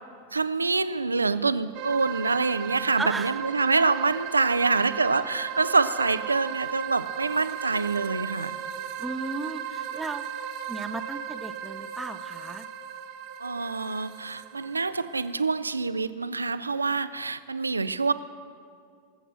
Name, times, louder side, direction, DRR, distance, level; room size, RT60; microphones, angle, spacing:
voice 1, 0.3-8.6 13.4-18.1, right 4 dB, 80° right, 14 dB, 0.5 m, -26 dB
sound 1, 1.8-15.3, right 9 dB, 45° right, 1.0 m, -36 dB
voice 2, 3.0-3.3 9.0-10.2 10.7-12.7, right 3 dB, 10° right, 11 dB, 0.6 m, -35 dB
20.5 x 8.0 x 6.0 m, 2.3 s
figure-of-eight pair, 90°, 0 cm